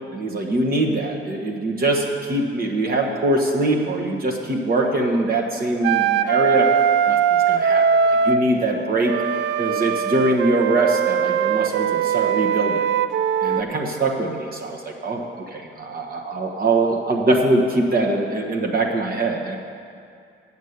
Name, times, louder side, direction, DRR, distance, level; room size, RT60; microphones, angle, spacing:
voice 1, 0.1-6.7 7.1-9.1 9.6-12.9 13.4-19.6, right 2 dB, 50° right, 0 dB, 1.3 m, -23 dB
Wind instrument woodwind instrument, 5.8-8.4 9.0-13.6, right 7 dB, 65° right, 0.4 m, -20 dB
8.2 x 7.3 x 8.0 m, 2.4 s
cardioid pair, 90°, 20 cm